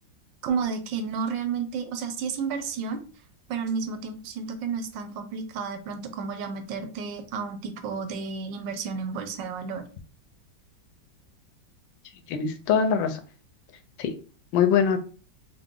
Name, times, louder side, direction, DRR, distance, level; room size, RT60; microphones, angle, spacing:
voice 1, 0.4-3.0 3.5-9.9, right 5 dB, 80° right, 8 dB, 1.2 m, -31 dB
voice 2, 12.3-13.2 14.0-14.1 14.5-15.0, left 7 dB, 90° left, 9 dB, 1.3 m, -22 dB
4.6 x 2.0 x 3.7 m, 0.38 s
omnidirectional pair, 2.1 m